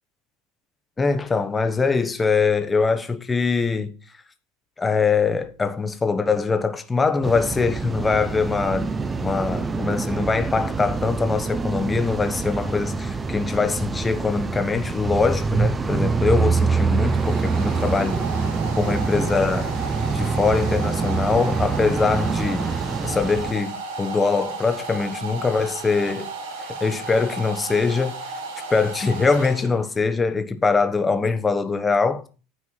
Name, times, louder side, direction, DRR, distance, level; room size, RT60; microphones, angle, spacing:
voice 1, 1.0-3.9 4.8-8.9 9.2-18.2 18.8-19.7 20.1-22.7 23.0-26.3 26.6-28.2 28.7-32.2, left 4 dB, 15° left, 1.0 m, -23 dB
sound 1, 7.2-23.5, right 4 dB, 15° right, 0.7 m, -25 dB
Domestic sounds home sounds, 16.3-30.1, right 3 dB, 85° right, 5.1 m, -34 dB
9.6 x 4.6 x 7.4 m
supercardioid pair, 150°, 0 cm